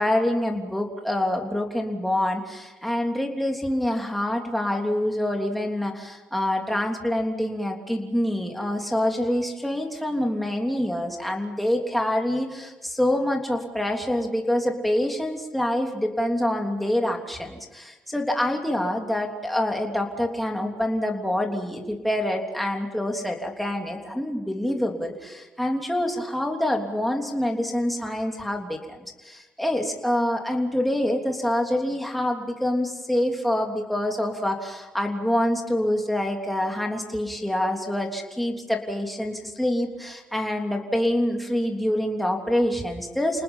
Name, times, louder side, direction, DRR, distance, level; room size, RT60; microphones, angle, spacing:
voice 1, 0.0-29.0 29.2-43.4, left 1 dB, ahead, 1 dB, 3.2 m, -26 dB
29.5 x 19.5 x 5.8 m, 1.1 s
cardioid pair, 100°, 4 cm